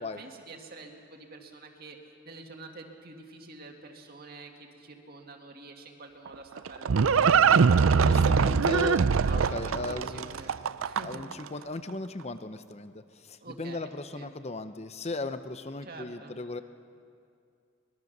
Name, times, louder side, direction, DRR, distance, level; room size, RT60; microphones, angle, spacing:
voice 1, 0.0-2.0 2.2-8.2 8.8-8.9 9.2-10.5 10.8-11.2 13.4-14.3 15.8-16.4, right 3 dB, 50° right, 2 dB, 2.1 m, -47 dB
Livestock farm animals working animals, 6.3-11.3, right 5 dB, 85° right, 0.5 m, -22 dB
voice 2, 7.9-9.0 9.3-10.3 11.0-12.9 13.2-16.6, left 3 dB, 30° left, 11 dB, 0.8 m, -37 dB
24.0 x 20.5 x 6.7 m, 2.4 s
head